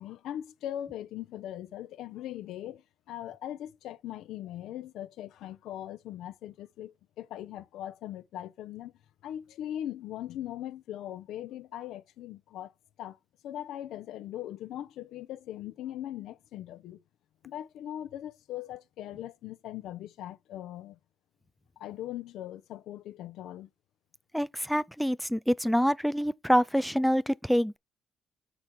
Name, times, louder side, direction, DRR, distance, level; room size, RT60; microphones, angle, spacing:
voice 1, 0.0-8.9 9.2-12.7 13.0-13.2 13.4-17.0 17.4-21.0 21.8-23.7, left 12 dB, 85° left, 0.6 m, -40 dB
voice 2, 24.3-27.8, equal, ahead, 0.3 m, -26 dB
5.0 x 4.6 x 5.9 m
cardioid pair, 90°, 0 cm